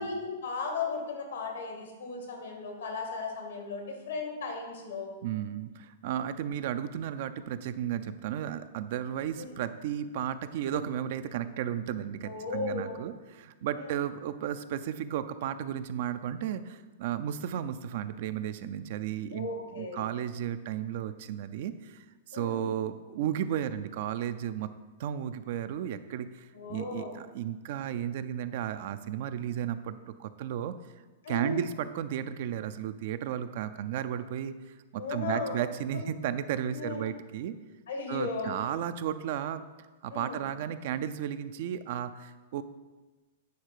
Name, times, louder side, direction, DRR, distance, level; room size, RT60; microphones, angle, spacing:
voice 1, 0.0-5.1 9.4-9.5 12.2-13.0 13.8-13.9 19.3-20.0 22.3-22.6 26.5-27.1 31.2-31.6 35.0-35.6 35.9-36.0 36.7-37.0 37.9-38.6 40.1-40.4, left 4 dB, 85° left, 2 dB, 2.2 m, -36 dB
voice 2, 5.2-19.5 19.8-24.7 25.0-30.7 31.3-37.6 38.1-39.6 40.0-42.6, right 10 dB, 60° right, 11 dB, 0.5 m, -34 dB
9.4 x 3.7 x 6.7 m, 1.2 s
hypercardioid pair, 135°, 0 cm